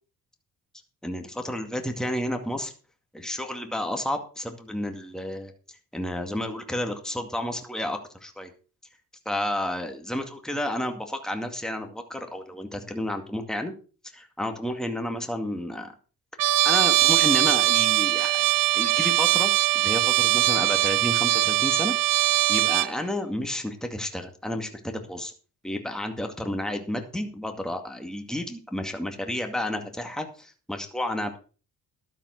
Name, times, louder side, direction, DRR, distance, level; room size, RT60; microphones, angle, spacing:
voice 1, 1.0-2.7 3.1-8.5 9.3-13.7 14.1-15.9 16.6-21.9 22.2-25.3 25.6-31.4, left 1 dB, ahead, 5 dB, 2.1 m, -31 dB
Trumpet, 16.4-22.9, right 14 dB, 65° right, 0.7 m, -21 dB
12.5 x 7.5 x 6.0 m, 0.37 s
cardioid pair, 95°, 36 cm